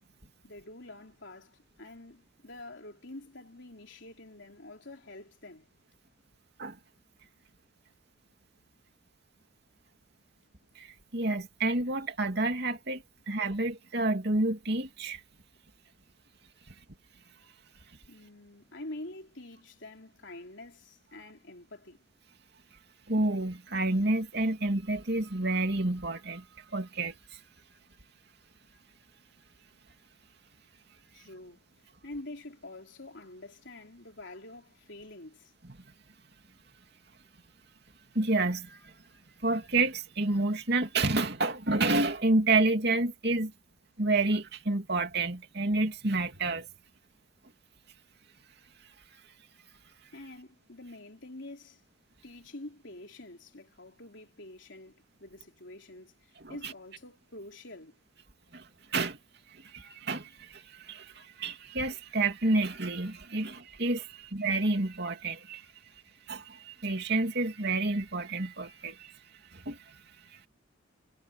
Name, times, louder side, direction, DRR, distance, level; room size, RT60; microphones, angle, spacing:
voice 1, 0.4-5.7 18.1-22.0 31.1-31.6 32.0-35.5 50.1-51.8 52.2-58.0, left 2 dB, 60° left, 3.8 m, -47 dB
voice 2, 10.7-15.2 16.7-16.8 23.1-27.4 38.1-38.9 39.4-43.5 44.0-46.7 56.4-56.7 58.5-59.2 59.5-65.7 66.3-69.2 69.5-70.4, right 2 dB, 55° right, 2.9 m, -29 dB
head